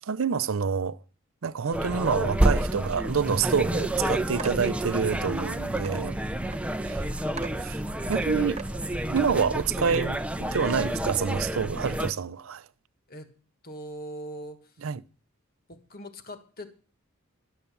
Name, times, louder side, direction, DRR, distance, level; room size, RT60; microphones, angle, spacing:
voice 1, 0.1-1.0 1.4-6.2 6.8-7.1 7.6-7.8 8.1-8.6 9.1-12.6 14.8-15.0, right 6 dB, 65° right, 0.5 m, -27 dB
sound 1, 1.7-12.1, right 1 dB, 5° right, 0.5 m, -29 dB
sound 2, 4.4-4.6 5.4-5.5 5.8-6.0 6.5-6.6 7.0-7.1 7.4-7.6 8.1-8.2 8.5-8.8 9.3-9.5 9.9-10.0, right 6 dB, 30° right, 0.9 m, -39 dB
voice 2, 13.6-14.8 15.7-16.7, equal, 45° left, 1.5 m, -42 dB
12.0 x 8.1 x 7.0 m
head